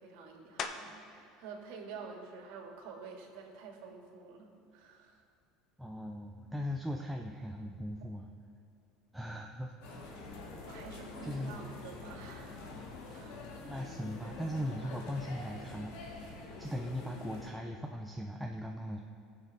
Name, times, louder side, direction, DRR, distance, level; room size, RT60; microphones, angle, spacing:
voice 1, 0.0-5.2 10.7-12.6 13.1-13.3, right 5 dB, 80° right, 1 dB, 1.9 m, -49 dB
sound 1, 0.6-1.2 1.7-6.2 6.7-11.9 12.1-17.8, left 6 dB, 40° left, 0.7 m, -51 dB
voice 2, 5.8-8.3 9.1-9.7 11.2-11.5 13.1-13.2 13.6-19.0, equal, 5° right, 1 dB, 0.6 m, -39 dB
sound 2, 9.8-17.5, left 3 dB, 75° left, 2.2 m, -46 dB
18.0 x 7.3 x 4.1 m, 2.5 s
cardioid pair, 140°, 0 cm